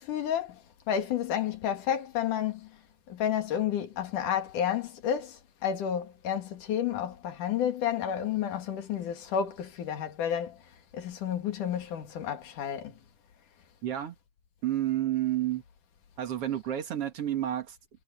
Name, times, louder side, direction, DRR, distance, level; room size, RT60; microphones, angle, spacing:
voice 1, 0.0-2.7 3.1-10.6 10.9-13.0, left 9 dB, 70° left, 3.7 m, -31 dB
voice 2, 13.8-14.2 14.6-15.6 16.2-17.8, right 12 dB, 50° right, 2.5 m, -30 dB
omnidirectional pair, 3.8 m